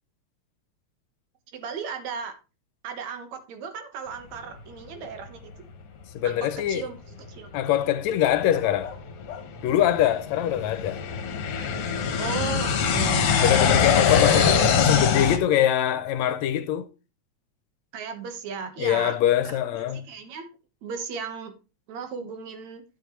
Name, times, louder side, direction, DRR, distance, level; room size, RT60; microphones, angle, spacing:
voice 1, 1.5-2.3 2.8-5.7 6.2-7.5 12.2-13.3 17.9-19.2 19.4-20.5 20.8-21.5 21.9-22.8, right 6 dB, 70° right, 2.6 m, -36 dB
voice 2, 6.1-6.8 7.5-8.9 9.6-11.0 13.4-16.9 18.8-20.1, left 11 dB, 75° left, 1.9 m, -23 dB
sound 1, 6.5-6.7 7.2-7.3 8.0-15.4, left 6 dB, 60° left, 1.8 m, -23 dB
11.5 x 7.2 x 3.1 m
omnidirectional pair, 3.3 m